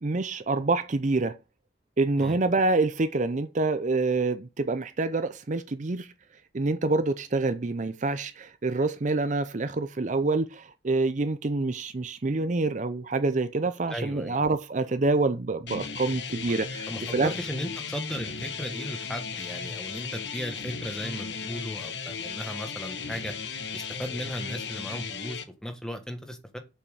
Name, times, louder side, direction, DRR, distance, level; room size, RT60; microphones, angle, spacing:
voice 1, 0.0-1.4 2.0-6.1 6.5-17.3, right 3 dB, 45° right, 0.6 m, -26 dB
voice 2, 13.9-14.4 16.9-23.3 23.7-26.6, equal, 5° left, 1.3 m, -36 dB
sound 1, 15.7-25.4, left 5 dB, 75° left, 1.1 m, -36 dB
7.0 x 5.7 x 6.5 m
head